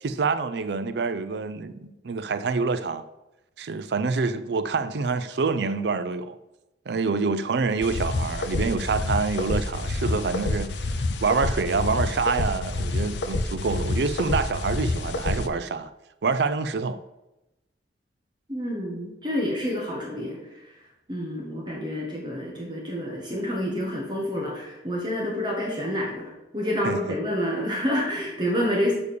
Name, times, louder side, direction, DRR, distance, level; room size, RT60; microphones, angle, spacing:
voice 1, 0.0-3.0 3.6-6.4 6.9-15.9 16.2-17.0 26.8-27.2, right 4 dB, 65° right, 0.5 m, -26 dB
sound 1, 7.8-15.5, left 2 dB, 75° left, 0.6 m, -28 dB
voice 2, 18.5-20.4 21.1-28.9, equal, 25° right, 1.7 m, -28 dB
6.7 x 5.0 x 6.7 m
head